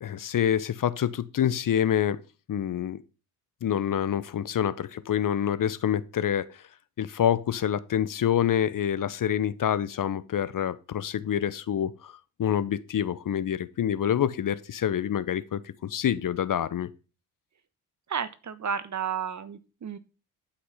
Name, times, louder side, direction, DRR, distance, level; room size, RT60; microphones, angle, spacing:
voice 1, 0.0-2.2 2.5-3.0 3.6-6.5 7.0-16.9, left 9 dB, 45° left, 0.9 m, -27 dB
voice 2, 18.1-20.0, right 7 dB, 35° right, 1.2 m, -32 dB
11.5 x 5.8 x 5.6 m
hypercardioid pair, 50°, 47 cm